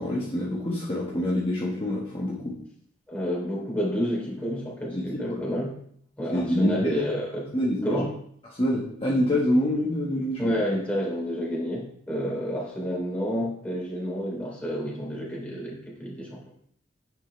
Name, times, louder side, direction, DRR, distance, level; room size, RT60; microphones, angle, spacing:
voice 1, 0.0-2.6 4.9-5.0 5.3-5.5 6.3-7.0 7.5-8.0 8.5-10.4, left 1 dB, 30° left, -5 dB, 1.5 m, -26 dB
voice 2, 3.1-5.7 6.2-7.4 7.8-8.1 10.4-16.4, equal, 5° left, -4 dB, 3.0 m, -29 dB
10.0 x 7.4 x 3.3 m, 0.65 s
head